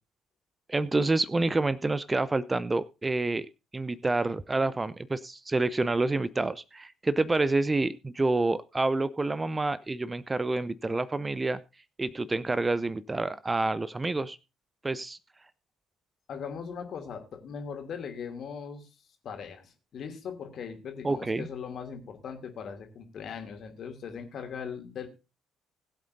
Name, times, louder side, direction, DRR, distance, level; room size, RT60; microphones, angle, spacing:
voice 1, 0.7-3.5 3.7-11.6 12.0-14.4 14.8-15.2 21.0-21.5, right 2 dB, 20° right, 17 dB, 0.7 m, -28 dB
voice 2, 16.3-18.9 19.2-25.1, left 6 dB, 50° left, 5 dB, 2.7 m, -39 dB
20.0 x 8.4 x 2.6 m, 0.29 s
figure-of-eight pair, 45°, 0 cm